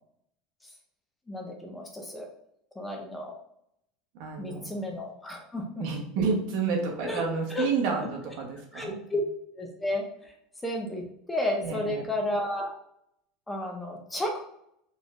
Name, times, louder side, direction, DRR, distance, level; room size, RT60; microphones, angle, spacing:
voice 1, 1.3-2.3 2.8-3.4 4.4-5.8 7.0-7.2 7.5-7.7 8.7-9.2 9.6-10.3 10.6-12.7 13.5-14.4, left 1 dB, 10° left, 1 dB, 0.5 m, -32 dB
voice 2, 4.2-4.8 5.8-9.0 11.6-12.1, right 5 dB, 55° right, 1 dB, 1.0 m, -30 dB
4.0 x 3.2 x 2.4 m, 0.75 s
supercardioid pair, 155°, 0 cm